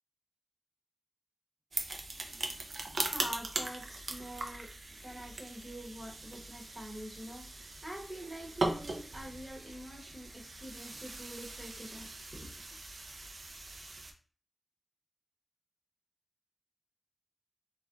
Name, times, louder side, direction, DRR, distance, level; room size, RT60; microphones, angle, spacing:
sound 1, 1.7-14.1, right 2 dB, 65° right, 0.4 m, -40 dB
voice 1, 2.9-4.7 5.0-12.6, right 1 dB, 30° right, 0 dB, 0.9 m, -46 dB
2.5 x 2.1 x 3.7 m, 0.41 s
cardioid pair, 50°, 0 cm